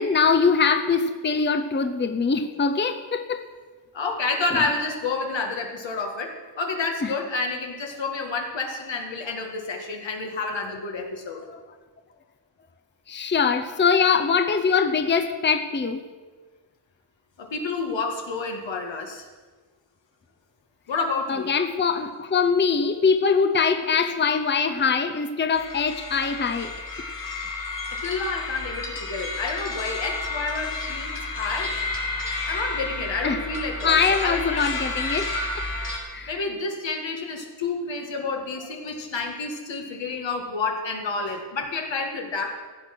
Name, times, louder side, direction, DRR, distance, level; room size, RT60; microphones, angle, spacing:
voice 1, 0.0-3.4 4.5-4.6 7.0-7.1 11.5-11.6 13.1-16.1 21.3-26.7 33.2-33.4 33.8-35.6 36.1-36.3, left 5 dB, 25° left, 7 dB, 0.7 m, -23 dB
voice 2, 3.9-11.4 17.4-19.3 20.9-21.5 27.9-31.8 32.5-34.7 36.3-42.6, left 3 dB, 85° left, 2 dB, 1.9 m, -29 dB
sound 1, 25.5-36.0, left 3 dB, 50° left, 2.6 m, -31 dB
15.5 x 7.9 x 6.0 m, 1.4 s
wide cardioid pair, 120°, 43 cm